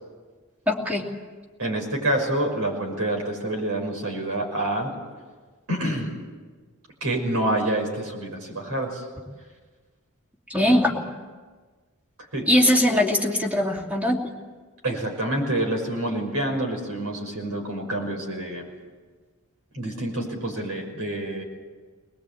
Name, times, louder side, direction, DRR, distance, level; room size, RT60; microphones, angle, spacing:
voice 1, 0.7-1.0 10.5-11.0 12.5-14.2, left 1 dB, 5° right, 0 dB, 2.7 m, -21 dB
voice 2, 1.6-4.9 5.7-6.1 7.0-9.0 12.3-12.5 14.8-18.7 19.7-21.4, right 1 dB, 75° right, 2 dB, 5.8 m, -27 dB
21.0 x 20.5 x 8.6 m, 1.4 s
head